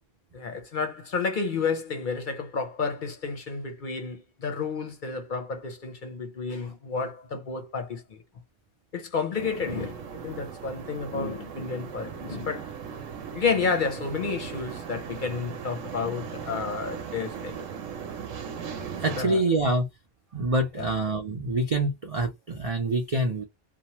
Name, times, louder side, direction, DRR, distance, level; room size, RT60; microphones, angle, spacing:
voice 1, 0.3-8.2 8.9-12.7 13.3-17.5 18.1-18.2 19.2-19.4 20.7-20.9, left 5 dB, 50° left, 0.7 m, -31 dB
sound 1, 9.3-19.2, right 7 dB, 90° right, 1.1 m, -38 dB
voice 2, 18.9-19.9 20.3-23.4, right 2 dB, 65° right, 0.3 m, -26 dB
2.9 x 2.0 x 2.9 m
omnidirectional pair, 1.3 m